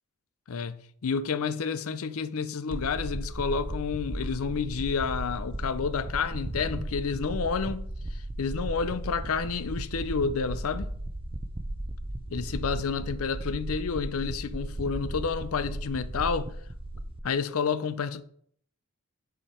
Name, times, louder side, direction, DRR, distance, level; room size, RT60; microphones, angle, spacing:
voice 1, 1.0-7.9 8.4-10.9 12.3-16.5 17.2-18.2, left 5 dB, 75° left, 0.5 m, -30 dB
sound 1, 2.7-17.2, right 1 dB, 25° right, 0.5 m, -36 dB
7.2 x 4.9 x 4.4 m
head